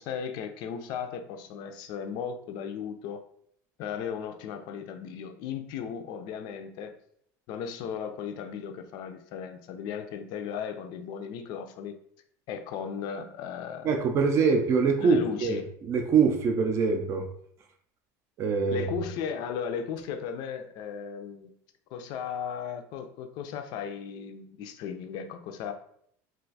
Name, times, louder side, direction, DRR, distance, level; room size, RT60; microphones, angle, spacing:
voice 1, 0.0-3.2 3.8-6.9 7.5-12.0 12.5-13.9 15.0-15.7 18.7-21.5 21.9-25.7, left 7 dB, 60° left, 7 dB, 0.4 m, -36 dB
voice 2, 13.8-17.3 18.4-18.9, right 5 dB, 35° right, 4 dB, 0.4 m, -24 dB
2.4 x 2.3 x 3.9 m, 0.66 s
cardioid pair, 145°, 8 cm